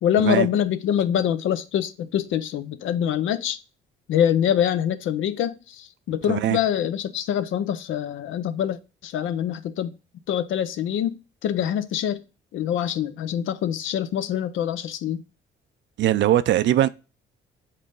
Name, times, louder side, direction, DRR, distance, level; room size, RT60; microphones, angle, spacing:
voice 1, 0.0-3.6 4.1-9.9 10.3-12.2 12.5-15.2, left 9 dB, 80° left, 0.6 m, -25 dB
voice 2, 6.3-6.6 16.0-16.9, right 12 dB, 65° right, 0.4 m, -20 dB
7.4 x 3.9 x 3.8 m
cardioid pair, 90°, 20 cm